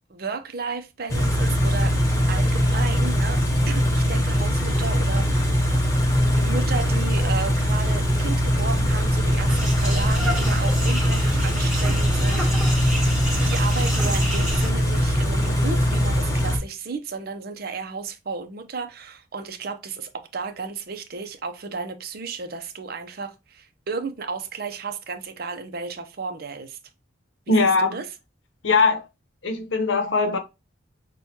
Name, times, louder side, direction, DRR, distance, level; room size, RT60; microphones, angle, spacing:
voice 1, 0.1-2.0 2.3-3.4 3.7-5.9 6.3-13.0 13.5-26.8 27.5-28.1, right 4 dB, 50° right, 0.6 m, -33 dB
Car / Idling, 1.1-16.6, equal, 15° left, 0.8 m, -21 dB
sound 1, 9.5-14.7, right 1 dB, 5° right, 1.4 m, -31 dB
voice 2, 27.5-28.0 28.6-29.0 29.4-30.4, left 3 dB, 70° left, 0.8 m, -20 dB
6.0 x 2.3 x 2.8 m
head